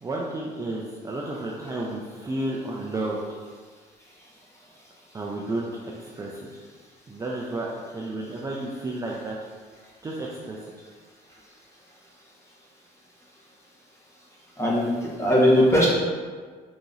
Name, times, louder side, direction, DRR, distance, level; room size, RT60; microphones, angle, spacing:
voice 1, 0.0-3.2 5.1-5.7 6.0-6.5 7.1-9.4 10.0-10.6, right 2 dB, 20° right, -3 dB, 0.5 m, -32 dB
voice 2, 14.6-15.9, equal, 15° left, -5 dB, 1.2 m, -19 dB
3.9 x 2.9 x 3.9 m, 1.5 s
cardioid pair, 110°, 17 cm